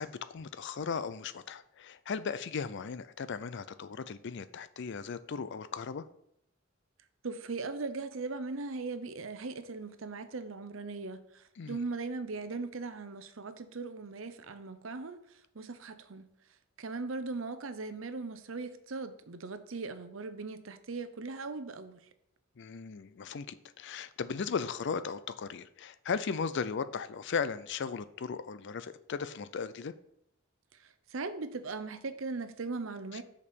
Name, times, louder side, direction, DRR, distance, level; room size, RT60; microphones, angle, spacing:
voice 1, 0.0-6.0 11.6-11.8 22.6-29.9, left 5 dB, 60° left, 0.5 m, -37 dB
voice 2, 7.2-16.3 16.8-22.0 30.8-33.2, right 3 dB, 65° right, 0.7 m, -39 dB
6.8 x 5.3 x 5.2 m
head